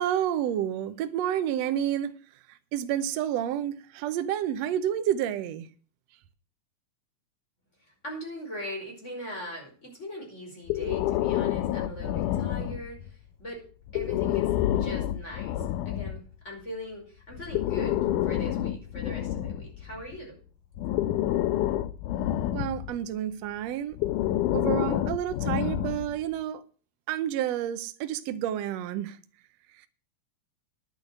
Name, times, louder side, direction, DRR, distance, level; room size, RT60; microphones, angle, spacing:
voice 1, 0.0-2.1 2.5-5.7 22.5-24.0 24.5-26.6 27.1-29.2, right 10 dB, 80° right, 1.5 m, -29 dB
voice 2, 7.8-13.6 13.9-18.0 18.2-20.4, equal, 20° left, 4.9 m, -40 dB
Breathing, 10.7-13.1 13.9-16.2 17.3-20.2 20.8-23.0 23.9-26.2, left 12 dB, 75° left, 2.1 m, -28 dB
10.5 x 7.3 x 7.9 m
omnidirectional pair, 4.0 m